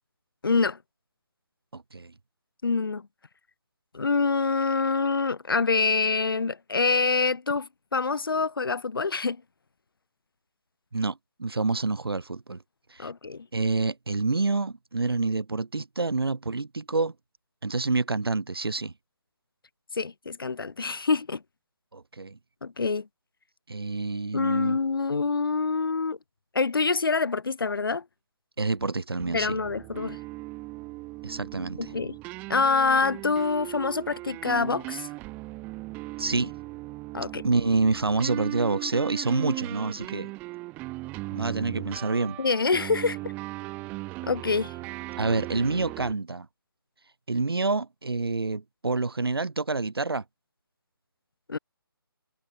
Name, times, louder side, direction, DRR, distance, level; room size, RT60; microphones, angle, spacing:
voice 1, 0.4-0.8 2.6-3.1 3.9-9.4 13.0-13.5 19.9-21.4 22.6-23.1 24.3-26.2 26.5-28.0 29.3-30.2 31.8-32.2 32.5-35.1 37.1-37.4 42.4-43.3 44.2-44.7 51.5-51.6, left 4 dB, 65° left, 1.6 m, -26 dB
voice 2, 1.7-2.1 10.9-12.6 12.9-13.1 13.5-17.1 17.6-18.9 21.9-22.4 23.7-24.8 28.6-29.6 31.2-31.9 36.2-36.5 37.4-40.3 41.3-42.4 45.2-46.5 47.3-50.2, right 3 dB, 85° right, 0.9 m, -27 dB
sound 1, 29.2-46.1, right 21 dB, 15° right, 0.9 m, -38 dB
figure-of-eight pair, 150°, 12 cm